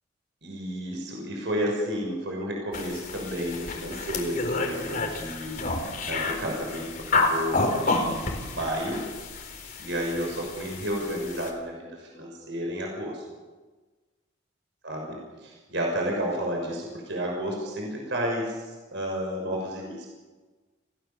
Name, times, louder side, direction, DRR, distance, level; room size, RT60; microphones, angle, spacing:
voice 1, 0.4-9.0 9.8-13.2 14.8-20.1, equal, 65° right, 0 dB, 6.2 m, -31 dB
sound 1, 2.7-11.5, left 3 dB, 45° left, 4.1 m, -30 dB
29.5 x 17.5 x 7.1 m, 1.3 s
head